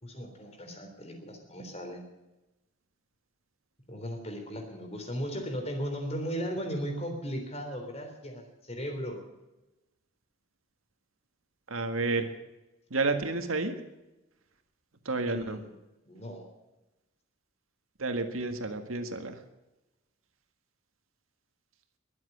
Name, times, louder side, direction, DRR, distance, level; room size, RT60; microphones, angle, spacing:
voice 1, 0.0-2.0 3.9-9.2 15.3-15.7 16.1-16.5, equal, 30° left, 4 dB, 3.5 m, -37 dB
voice 2, 11.7-12.3 12.9-13.8 15.1-15.6 18.0-19.4, right 3 dB, 85° right, 7 dB, 1.7 m, -30 dB
22.0 x 7.7 x 8.0 m, 1.0 s
head